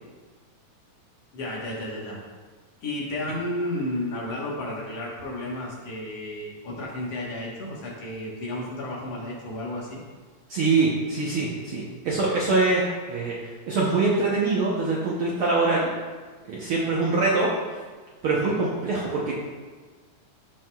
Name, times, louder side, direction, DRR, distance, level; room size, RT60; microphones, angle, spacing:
voice 1, 1.3-2.2 2.8-10.0, left 1 dB, 60° left, -5 dB, 2.2 m, -32 dB
voice 2, 10.5-13.4 13.7-15.9 16.5-17.5 18.2-19.3, right 3 dB, 80° right, -5 dB, 1.2 m, -24 dB
13.5 x 4.6 x 2.3 m, 1.4 s
omnidirectional pair, 3.5 m